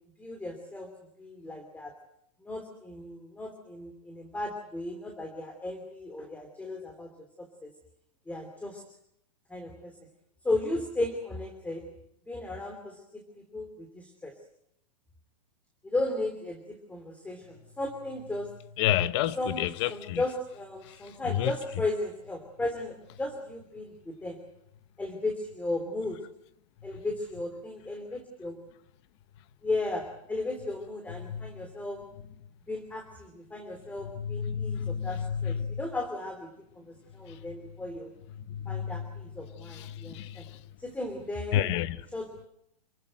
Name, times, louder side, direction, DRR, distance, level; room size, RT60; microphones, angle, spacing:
voice 1, 0.2-0.9 1.2-1.9 2.4-7.1 7.4-7.7 8.3-8.8 9.5-10.0 10.4-11.9 12.3-14.3 15.8-18.5 19.4-19.6 19.9-24.4 25.0-26.2 26.8-28.6 29.6-32.0 32.7-38.1 38.7-40.5 40.8-41.6 42.1-42.5, left 2 dB, 5° left, 3.0 m, -35 dB
voice 2, 18.8-20.2 20.8-21.6 26.9-27.0 31.2-31.6 34.1-35.8 37.3-37.4 38.3-39.1 39.6-40.7 41.5-42.1, left 10 dB, 45° left, 1.1 m, -31 dB
27.5 x 16.0 x 8.9 m
hypercardioid pair, 145°, 21 cm